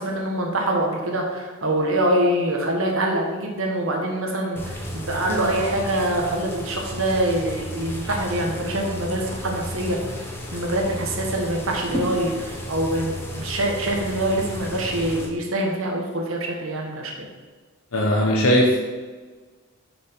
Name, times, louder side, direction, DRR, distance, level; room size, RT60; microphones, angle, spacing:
voice 1, 0.0-10.2 10.5-17.3, right 1 dB, 70° right, 1 dB, 1.5 m, -25 dB
sound 1, 4.6-15.3, equal, 10° left, 1.0 m, -33 dB
voice 2, 17.9-18.8, equal, 80° left, -2 dB, 1.1 m, -18 dB
6.8 x 6.3 x 4.7 m, 1.4 s
head